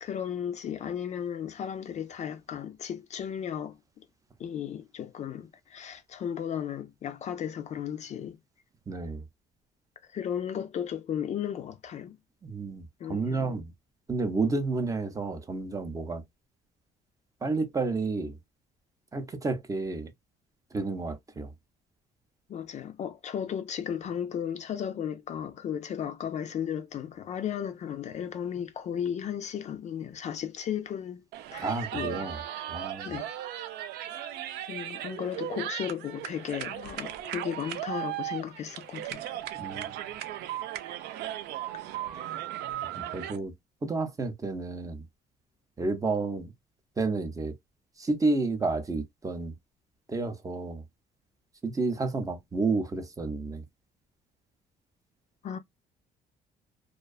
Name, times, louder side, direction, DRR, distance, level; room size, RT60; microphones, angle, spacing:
voice 1, 0.0-4.0 4.4-8.4 10.1-12.2 13.0-13.5 22.5-31.2 31.5-32.3 33.1-33.3 34.1-34.4 34.7-39.3 40.0-40.1 43.0-43.1 55.4-55.6, left 9 dB, 45° left, 0.4 m, -35 dB
voice 2, 8.9-9.2 12.4-13.7 14.1-16.2 17.4-18.4 19.1-20.1 20.7-21.5 31.6-32.4 32.7-33.2 39.5-39.9 42.9-43.5 43.8-45.1 45.8-46.5 47.0-47.6 48.0-49.6 50.1-50.9 51.6-53.6, right 3 dB, 20° right, 0.5 m, -31 dB
sound 1, 31.3-43.4, right 12 dB, 75° right, 0.4 m, -37 dB
2.4 x 2.2 x 2.2 m
cardioid pair, 110°, 17 cm